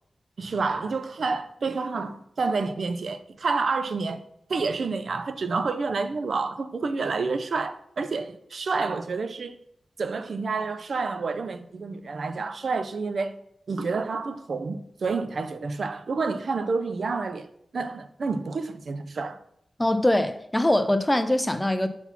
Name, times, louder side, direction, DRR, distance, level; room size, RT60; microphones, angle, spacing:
voice 1, 0.4-4.2 4.5-9.6 10.0-13.4 13.7-17.5 17.7-19.4, right 4 dB, 70° right, 0.5 m, -29 dB
voice 2, 19.8-21.9, left 1 dB, 15° left, 0.6 m, -22 dB
5.9 x 4.0 x 5.7 m
cardioid pair, 65°, 0 cm